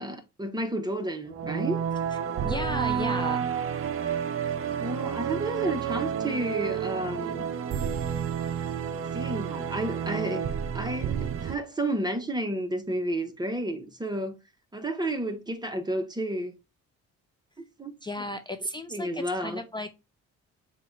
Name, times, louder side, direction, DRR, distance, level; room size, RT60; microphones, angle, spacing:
voice 1, 0.0-1.8 4.8-7.5 9.1-10.4 10.7-14.4 14.7-16.5 17.8-17.9 18.9-19.6, right 1 dB, 15° right, 1.0 m, -31 dB
sound 1, 1.3-11.6, right 8 dB, 50° right, 0.6 m, -30 dB
voice 2, 2.4-3.4 18.0-20.0, left 1 dB, 15° left, 0.4 m, -34 dB
6.8 x 2.4 x 3.1 m
cardioid pair, 90°, 30 cm